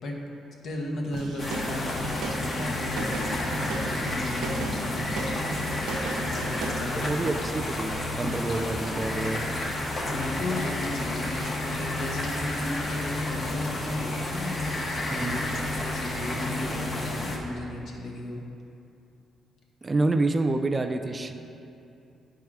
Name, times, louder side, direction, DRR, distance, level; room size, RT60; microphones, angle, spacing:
voice 1, 0.6-5.5 6.2-7.6 10.0-14.7 15.1-18.4, left 2 dB, 60° left, -1 dB, 1.5 m, -35 dB
sound 1, 1.1-6.9, right 3 dB, 85° right, 1.0 m, -34 dB
sound 2, 1.4-17.4, left 2 dB, 35° left, 1.4 m, -31 dB
voice 2, 6.9-9.5 15.1-15.5 19.8-21.3, right 2 dB, 25° right, 7 dB, 0.4 m, -28 dB
9.7 x 4.7 x 4.9 m, 2.7 s
cardioid pair, 90°, 0 cm